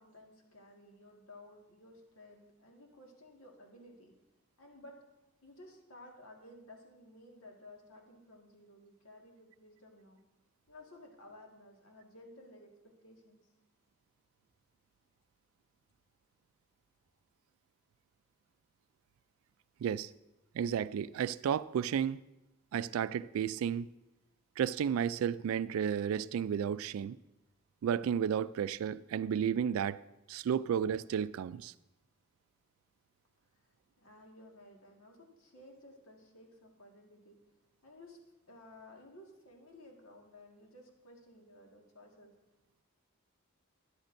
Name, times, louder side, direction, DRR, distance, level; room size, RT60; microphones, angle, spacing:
voice 1, 0.0-4.2 4.6-5.0 5.4-10.2 10.7-13.4 34.0-37.4 37.8-38.2 38.5-42.4, left 1 dB, 90° left, 1.8 m, -55 dB
voice 2, 20.5-22.2 22.7-23.9 24.6-27.2 27.8-30.0 30.3-31.7, right 8 dB, 85° right, 0.3 m, -32 dB
13.0 x 10.5 x 2.6 m
head